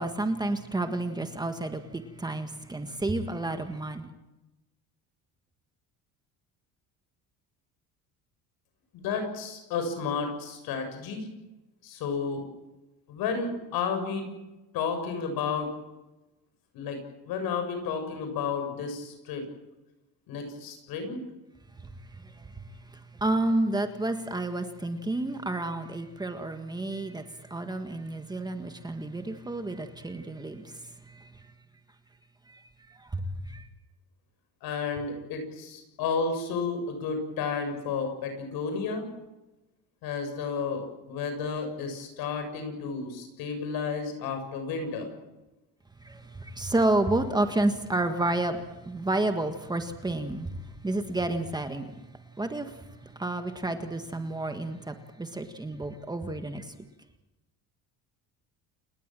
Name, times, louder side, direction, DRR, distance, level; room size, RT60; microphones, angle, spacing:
voice 1, 0.0-4.1 23.2-30.8 31.1-31.3 32.5-32.6 32.9-33.7 46.0-50.5 50.8-51.8 52.4-52.7 53.2-56.7, right 2 dB, 10° right, 7 dB, 1.6 m, -30 dB
voice 2, 8.9-11.3 11.8-12.4 13.1-14.3 14.7-15.7 16.7-17.0 17.2-19.4 20.3-21.2 34.6-39.1 40.0-45.1, left 5 dB, 75° left, 6 dB, 7.4 m, -32 dB
29.5 x 19.0 x 7.7 m, 1.0 s
cardioid pair, 155°, 37 cm